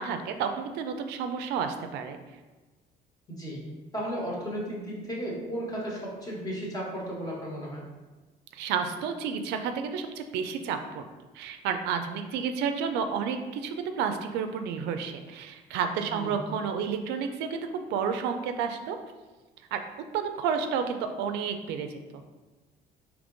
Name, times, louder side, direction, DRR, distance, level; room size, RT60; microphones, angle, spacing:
voice 1, 0.0-2.2 8.5-11.0 11.3-19.0 19.7-19.8 20.1-22.2, right 6 dB, 85° right, 7 dB, 0.4 m, -31 dB
voice 2, 3.3-3.6 3.9-7.8 16.1-16.4, equal, 20° left, -4 dB, 1.3 m, -34 dB
3.5 x 2.9 x 3.9 m, 1.2 s
cardioid pair, 110°, 17 cm